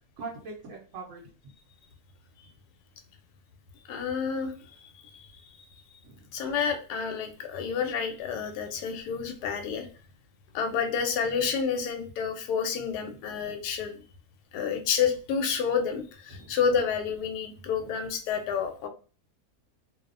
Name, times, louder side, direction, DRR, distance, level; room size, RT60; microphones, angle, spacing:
voice 1, 0.2-1.5 6.0-6.3 13.0-13.1 14.6-14.7 16.3-16.6, right 4 dB, 65° right, -2 dB, 0.8 m, -43 dB
voice 2, 3.9-4.5 4.8-5.6 6.3-9.9 10.5-14.0 14.5-18.9, left 6 dB, 80° left, 5 dB, 1.1 m, -29 dB
2.7 x 2.0 x 2.4 m, 0.37 s
omnidirectional pair, 1.7 m